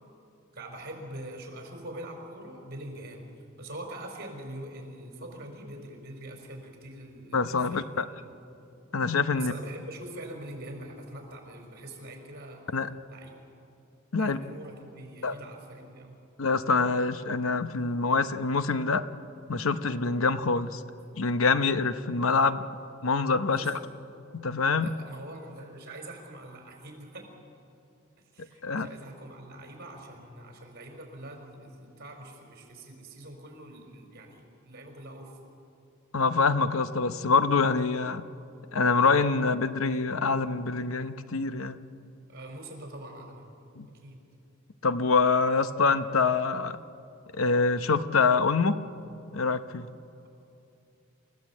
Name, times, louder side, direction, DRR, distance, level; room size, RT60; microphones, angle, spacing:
voice 1, 0.5-3.2 3.6-8.2 9.3-12.6 13.1-13.4 14.2-16.1 23.5-23.7 24.8-27.3 28.3-35.3 42.3-43.5 43.9-44.2, right 1 dB, 50° right, 2 dB, 5.0 m, -43 dB
voice 2, 7.3-8.1 8.9-9.5 12.7-12.9 14.1-14.4 15.2-15.3 16.4-19.0 19.5-20.8 21.1-22.6 23.0-23.8 24.3-24.9 28.6-28.9 36.1-38.3 38.7-41.9 43.8-43.9 44.8-46.8 47.3-48.8 49.3-49.9, left 4 dB, 85° left, 11 dB, 0.9 m, -25 dB
28.0 x 15.5 x 8.5 m, 2.7 s
head